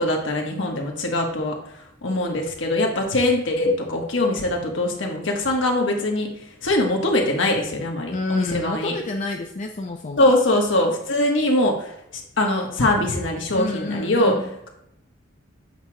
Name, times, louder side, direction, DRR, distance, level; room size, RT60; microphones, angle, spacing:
voice 1, 0.0-1.6 2.0-6.3 6.6-8.9 10.2-14.3, left 1 dB, 70° left, 1 dB, 1.3 m, -22 dB
voice 2, 8.1-10.3 13.5-14.5, left 2 dB, 40° left, 2 dB, 0.5 m, -29 dB
8.0 x 3.0 x 4.7 m, 0.77 s
head